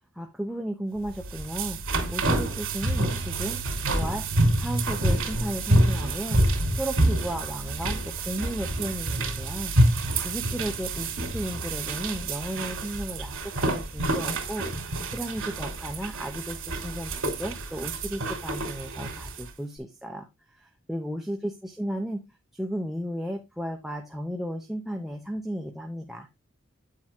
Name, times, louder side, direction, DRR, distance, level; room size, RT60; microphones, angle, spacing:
voice 1, 0.1-4.3 4.6-9.7 10.2-22.2 22.5-26.3, equal, ahead, 2 dB, 0.8 m, -34 dB
sound 1, 1.1-19.5, right 1 dB, 85° right, 2.8 m, -27 dB
9.4 x 7.5 x 2.2 m, 0.22 s
head